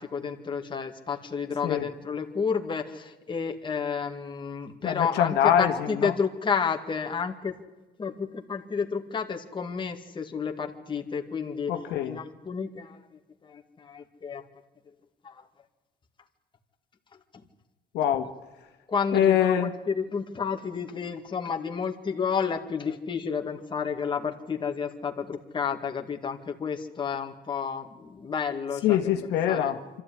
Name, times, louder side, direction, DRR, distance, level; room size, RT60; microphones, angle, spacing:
voice 1, 0.0-7.5 8.0-11.8 12.0-13.0 13.4-14.4 15.2-15.4 18.9-29.0 29.5-29.8, left 6 dB, 30° left, 3 dB, 2.1 m, -31 dB
voice 2, 4.8-6.2 11.7-12.2 17.9-18.3 19.1-19.7 28.8-30.0, left 10 dB, 85° left, 5 dB, 1.8 m, -24 dB
25.0 x 13.5 x 9.9 m, 1.1 s
cardioid pair, 110°, 17 cm